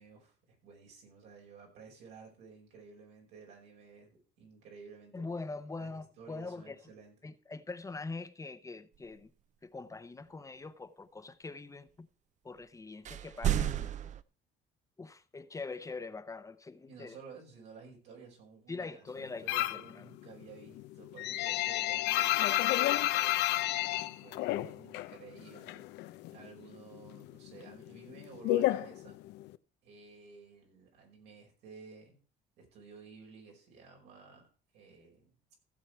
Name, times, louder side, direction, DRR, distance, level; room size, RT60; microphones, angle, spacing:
voice 1, 0.0-5.4 5.8-7.2 16.9-22.4 22.8-25.9 26.3-29.2 29.8-32.2 32.6-34.5 34.7-35.3, right 5 dB, 90° right, 5.2 m, -53 dB
voice 2, 5.1-6.8 7.2-9.3 9.6-12.1 12.4-13.9 15.0-17.2 18.7-20.0, left 3 dB, 20° left, 0.7 m, -43 dB
sound 1, 13.1-14.2, right 11 dB, 45° right, 0.6 m, -31 dB
sound 2, 19.5-19.9 20.3-25.1 25.4-26.5 26.7-29.6, left 16 dB, 90° left, 0.6 m, -30 dB
15.5 x 7.3 x 4.5 m
cardioid pair, 110°, 17 cm